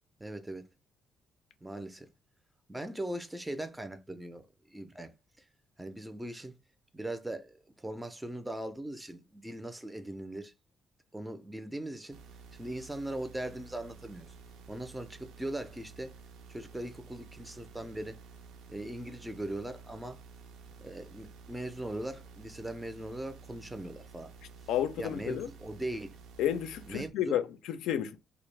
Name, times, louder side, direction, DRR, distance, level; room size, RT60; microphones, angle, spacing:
voice 1, 0.2-0.7 1.6-2.1 2.7-5.1 5.4-5.5 5.8-6.5 6.9-10.5 11.1-12.2 12.6-14.3 14.7-16.1 16.5-18.2 18.7-20.2 20.8-24.3 25.0-26.2 26.9-27.4, right 1 dB, 10° right, 0.4 m, -40 dB
sound 1, 12.1-27.1, right 5 dB, 90° right, 0.4 m, -52 dB
voice 2, 24.7-25.5 26.4-28.2, left 10 dB, 90° left, 0.3 m, -31 dB
2.3 x 2.0 x 3.1 m
cardioid pair, 90°, 0 cm